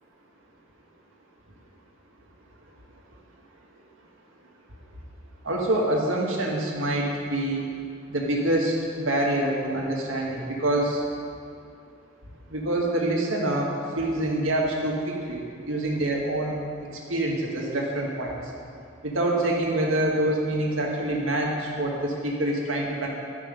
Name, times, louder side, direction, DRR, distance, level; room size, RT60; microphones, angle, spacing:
voice 1, 5.4-7.6 8.1-11.0 12.5-13.7 14.0-16.6 17.1-18.4 19.0-23.1, right 1 dB, 80° right, -1 dB, 1.7 m, -26 dB
11.5 x 6.2 x 5.2 m, 2.4 s
head